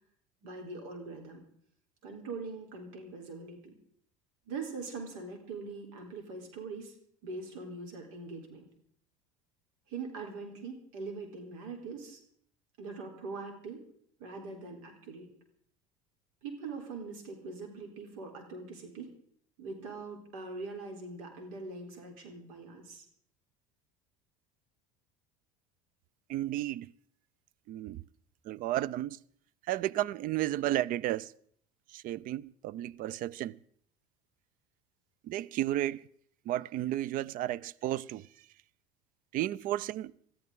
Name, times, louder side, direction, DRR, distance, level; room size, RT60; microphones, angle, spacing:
voice 1, 0.4-1.4 2.0-3.7 4.5-6.9 7.2-8.7 9.9-12.2 12.8-13.8 14.2-15.3 16.4-19.1 19.6-23.0, right 4 dB, 75° right, 3.9 m, -42 dB
voice 2, 26.3-26.9 27.7-28.0 28.4-29.2 29.7-31.3 31.9-33.6 35.2-36.1 36.5-38.3 39.3-40.1, right 14 dB, 55° right, 0.5 m, -33 dB
21.0 x 13.5 x 3.9 m
hypercardioid pair, 80°, 17 cm